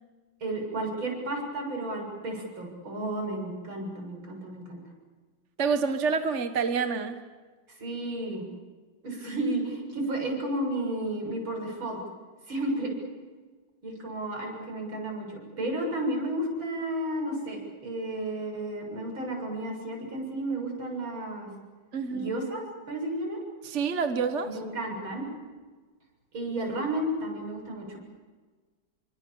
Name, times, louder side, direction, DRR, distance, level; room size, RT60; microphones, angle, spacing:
voice 1, 0.4-4.8 7.7-8.5 9.0-12.0 12.5-13.0 13.8-21.5 22.1-23.4 24.4-25.3 26.3-28.0, right 1 dB, 65° right, 1 dB, 7.9 m, -32 dB
voice 2, 5.6-7.2 21.9-22.3 23.6-24.6, right 5 dB, 35° right, 7 dB, 1.5 m, -27 dB
29.0 x 25.0 x 7.2 m, 1.4 s
omnidirectional pair, 2.4 m